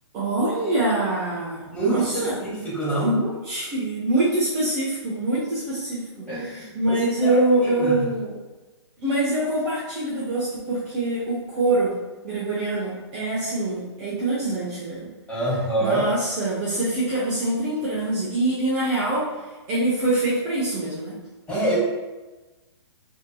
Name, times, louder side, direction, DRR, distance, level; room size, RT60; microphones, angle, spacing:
voice 1, 0.1-2.4 2.9-8.4 9.0-12.0 12.2-15.1 15.8-19.3 19.7-21.2, right 2 dB, 20° right, -6 dB, 0.4 m, -24 dB
voice 2, 1.7-3.1 6.3-8.0 15.3-16.0 21.5-21.7, right 2 dB, 10° left, -8 dB, 1.0 m, -26 dB
2.6 x 2.5 x 2.2 m, 1.2 s
hypercardioid pair, 145°, 15 cm